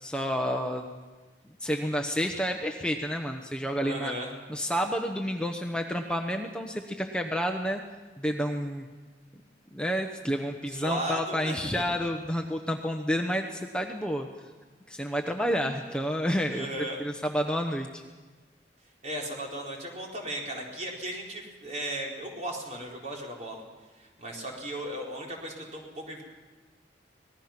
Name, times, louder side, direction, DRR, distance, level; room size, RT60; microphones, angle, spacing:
voice 1, 0.0-0.9 1.6-4.1 4.5-7.8 8.2-8.9 9.7-14.3 14.9-18.0, equal, 5° left, 3 dB, 1.0 m, -30 dB
voice 2, 3.8-4.3 10.7-11.8 16.5-17.0 19.0-23.6 24.0-26.2, right 1 dB, 40° right, -1 dB, 4.3 m, -36 dB
25.5 x 19.0 x 6.0 m, 1.3 s
head